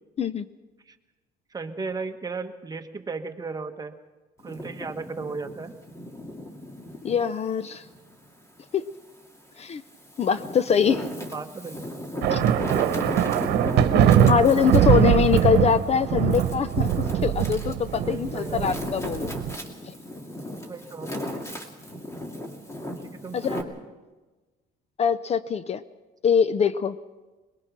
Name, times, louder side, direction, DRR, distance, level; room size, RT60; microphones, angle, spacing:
voice 1, 1.5-3.9 4.4-5.7 11.3-11.8 14.1-14.4 18.0-18.7 20.7-21.1 23.2-23.7, right 4 dB, 20° right, 5 dB, 1.4 m, -35 dB
Wind, 4.4-7.2 7.8-9.0 9.7-23.6, left 1 dB, 15° left, 2.6 m, -36 dB
voice 2, 7.0-7.8 8.7-8.9 9.6-9.8 10.2-11.1 12.3-12.4 13.9-19.3 23.3-23.6 25.0-25.8 26.2-27.0, left 7 dB, 40° left, 14 dB, 0.7 m, -23 dB
sound 1, 12.2-19.6, right 10 dB, 80° right, 1.1 m, -22 dB
22.0 x 21.0 x 6.0 m, 1.2 s
cardioid pair, 110°, 17 cm